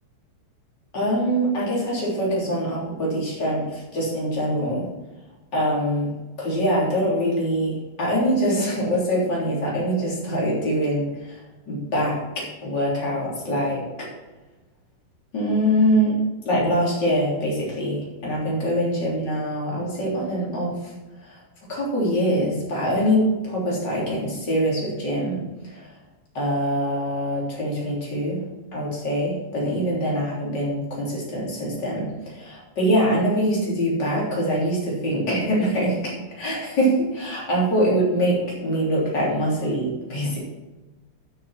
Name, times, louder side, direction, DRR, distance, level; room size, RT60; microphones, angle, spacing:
voice 1, 0.9-4.9 5.5-6.1 6.4-14.1 15.3-16.2 16.4-20.9 21.2-21.4 21.7-25.8 26.3-28.4 28.7-40.4, equal, 25° left, -5 dB, 3.0 m, -24 dB
10.0 x 6.5 x 6.0 m, 1.1 s
omnidirectional pair, 5.9 m